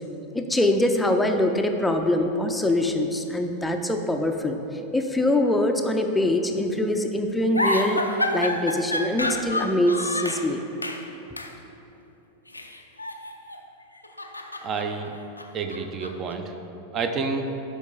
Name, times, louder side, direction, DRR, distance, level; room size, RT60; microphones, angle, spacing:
voice 1, 0.3-4.6 4.9-8.0 8.3-10.6, left 1 dB, 5° left, 4 dB, 0.6 m, -23 dB
sound 1, 7.5-10.5 10.8-11.1 11.4-11.6 12.5-13.6 14.0-16.3, left 1 dB, 85° left, 0.5 m, -29 dB
voice 2, 14.6-15.1 15.5-16.5 16.9-17.5, right 4 dB, 30° right, 6 dB, 0.8 m, -29 dB
12.0 x 5.3 x 4.0 m, 3.0 s
figure-of-eight pair, 90°, 0 cm